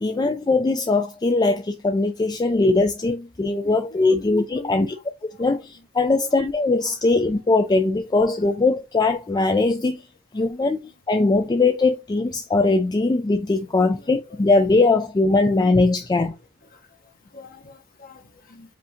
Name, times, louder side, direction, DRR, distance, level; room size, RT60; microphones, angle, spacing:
voice 1, 0.0-5.0 5.2-10.0 10.3-16.3, left 3 dB, 20° left, 0.3 m, -20 dB
voice 2, 3.6-4.2 4.5-4.9 6.2-6.3 6.9-7.0 10.4-10.5 13.6-13.9 14.3-14.4 16.7-18.8, left 1 dB, 40° left, 1.0 m, -45 dB
5.0 x 2.8 x 3.5 m
head